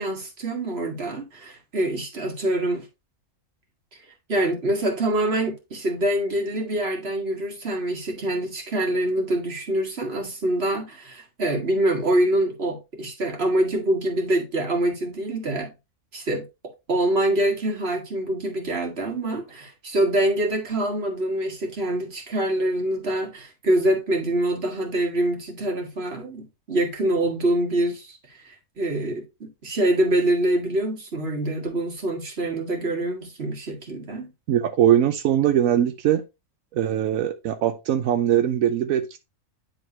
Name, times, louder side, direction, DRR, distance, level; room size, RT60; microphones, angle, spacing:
voice 1, 0.0-2.9 4.3-15.7 16.1-16.4 16.9-34.3, right 1 dB, 50° right, 1.9 m, -25 dB
voice 2, 34.5-36.2 36.7-39.2, right 10 dB, 90° right, 1.1 m, -21 dB
9.6 x 3.9 x 2.9 m
omnidirectional pair, 1.4 m